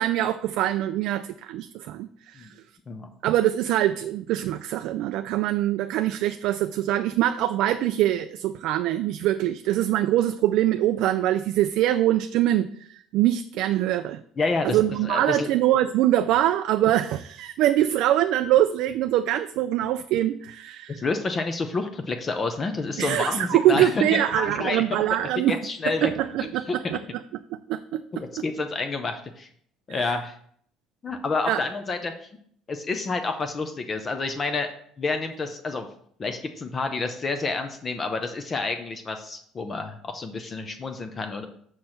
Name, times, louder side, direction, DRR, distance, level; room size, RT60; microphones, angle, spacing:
voice 1, 0.0-2.5 3.2-14.2 14.6-21.0 23.0-25.6 26.0-27.0 27.7-28.0 30.0-30.1 31.5-31.6, right 13 dB, 60° right, 10 dB, 0.3 m, -23 dB
voice 2, 14.4-15.5 20.9-24.8 25.5-26.8 28.1-29.5 29.9-30.3 31.0-32.3 32.7-34.7 35.0-35.9 36.2-41.5, left 3 dB, 20° left, 6 dB, 0.5 m, -29 dB
6.3 x 4.5 x 5.7 m, 0.63 s
cardioid pair, 170°, 0 cm